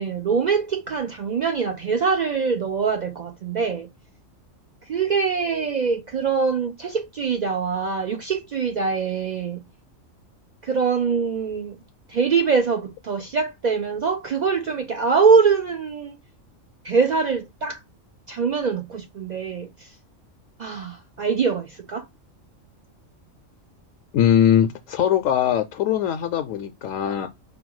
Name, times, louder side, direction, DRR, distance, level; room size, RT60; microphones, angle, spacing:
voice 1, 0.0-3.9 4.9-9.6 10.6-11.8 12.1-16.2 16.8-17.8 18.3-19.9 20.6-22.0, right 5 dB, 80° right, 0.3 m, -23 dB
voice 2, 24.1-27.3, left 10 dB, 80° left, 1.0 m, -21 dB
5.0 x 2.3 x 4.6 m
omnidirectional pair, 1.3 m